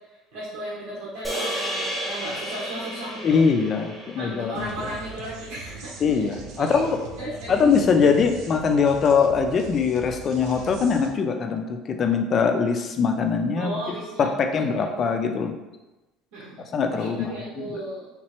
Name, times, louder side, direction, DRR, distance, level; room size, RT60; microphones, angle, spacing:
voice 1, 0.3-3.4 4.2-6.2 6.7-6.8 7.2-7.8 13.6-14.3 14.6-15.1 16.3-16.7 16.9-18.1, right 1 dB, 80° right, -8 dB, 1.0 m, -35 dB
sound 1, 1.2-5.7, equal, 10° right, 1.0 m, -33 dB
voice 2, 3.2-4.9 6.0-7.0 7.5-15.5 16.7-17.8, left 5 dB, 30° left, 5 dB, 0.3 m, -22 dB
sound 2, 4.5-11.1, right 4 dB, 60° right, 0.5 m, -41 dB
3.6 x 3.0 x 2.9 m, 1.1 s
cardioid pair, 160°, 0 cm